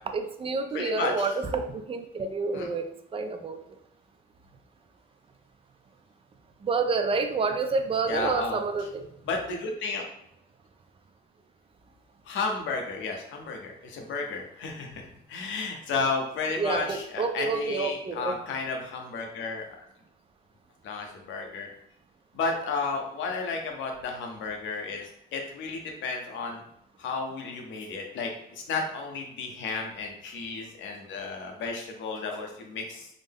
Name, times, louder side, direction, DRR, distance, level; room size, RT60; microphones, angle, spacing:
voice 1, 0.1-3.6 6.6-9.1 16.6-18.4, right 4 dB, 30° right, 6 dB, 0.4 m, -29 dB
voice 2, 0.7-1.3 2.5-2.7 8.1-8.6 9.3-10.0 12.3-19.8 20.8-21.7 22.3-26.6 27.0-33.1, left 4 dB, 80° left, 2 dB, 0.8 m, -33 dB
3.7 x 2.1 x 3.5 m, 0.76 s
cardioid pair, 115°, 19 cm